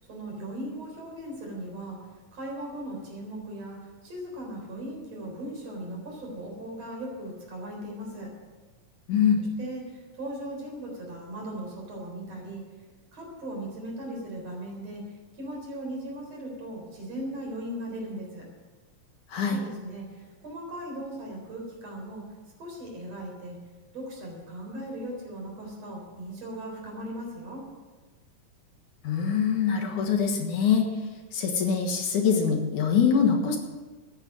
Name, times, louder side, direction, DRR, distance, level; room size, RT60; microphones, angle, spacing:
voice 1, 0.0-2.0 2.3-3.8 4.0-8.3 9.6-12.6 13.1-15.0 15.3-18.5 19.4-22.2 22.6-23.6 23.9-27.6, right 1 dB, 50° right, -1 dB, 5.0 m, -38 dB
voice 2, 9.1-9.4 19.3-19.6 29.0-30.9 31.3-33.6, left 6 dB, 70° left, 3 dB, 2.8 m, -24 dB
13.5 x 9.9 x 7.6 m, 1.3 s
omnidirectional pair, 3.9 m